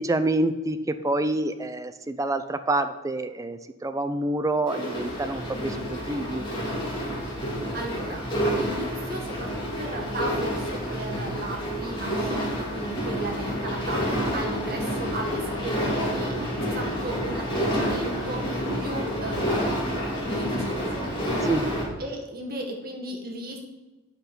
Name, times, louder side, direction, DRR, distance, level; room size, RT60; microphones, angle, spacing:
voice 1, 0.0-6.4 21.4-21.7, right 2 dB, 15° right, 10 dB, 0.4 m, -27 dB
sound 1, 4.7-21.8, equal, 20° left, 2.5 m, -29 dB
voice 2, 7.7-16.3 16.6-19.9 20.2-21.5 22.0-23.6, right 1 dB, 45° right, 0 dB, 1.6 m, -35 dB
8.0 x 6.0 x 5.2 m, 1.1 s
head